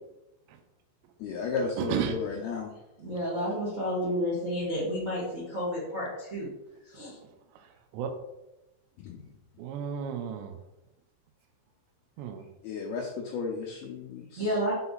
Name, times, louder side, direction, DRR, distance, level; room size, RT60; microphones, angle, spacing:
voice 1, 1.2-2.8 9.0-9.3 12.6-14.6, left 5 dB, 80° left, 0 dB, 2.2 m, -34 dB
voice 2, 1.8-2.2 7.5-7.7 7.9-8.2 9.6-10.6 12.2-12.5, right 8 dB, 80° right, 5 dB, 2.7 m, -33 dB
voice 3, 3.0-6.5 6.9-7.1 14.4-14.7, equal, 60° right, -7 dB, 0.8 m, -31 dB
7.5 x 3.9 x 4.0 m, 0.93 s
omnidirectional pair, 5.3 m